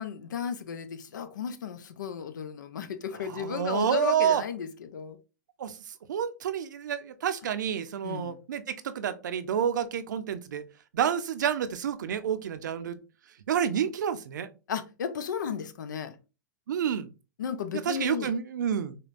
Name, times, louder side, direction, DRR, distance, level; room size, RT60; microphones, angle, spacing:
voice 1, 0.0-5.2 8.0-8.4 14.7-16.2 17.4-18.3, left 7 dB, 80° left, 0.5 m, -34 dB
voice 2, 3.3-4.4 5.6-5.7 6.1-10.6 10.9-13.0 13.5-14.5 16.7-17.1 17.8-19.0, right 8 dB, 75° right, 0.5 m, -29 dB
5.2 x 2.2 x 2.5 m
hypercardioid pair, 120°, 10 cm